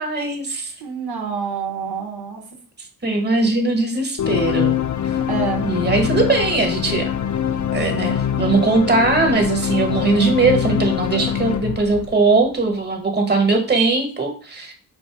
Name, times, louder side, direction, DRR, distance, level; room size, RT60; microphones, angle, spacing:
voice 1, 0.0-0.7 3.0-4.8 5.6-7.1 7.7-14.7, right 3 dB, 25° right, 3 dB, 1.2 m, -20 dB
voice 2, 0.8-2.4 5.3-5.6, right 6 dB, 85° right, 1 dB, 1.0 m, -27 dB
sound 1, 4.2-12.6, left 9 dB, 50° left, 0.5 m, -23 dB
4.4 x 2.6 x 4.7 m, 0.40 s
cardioid pair, 70°, 37 cm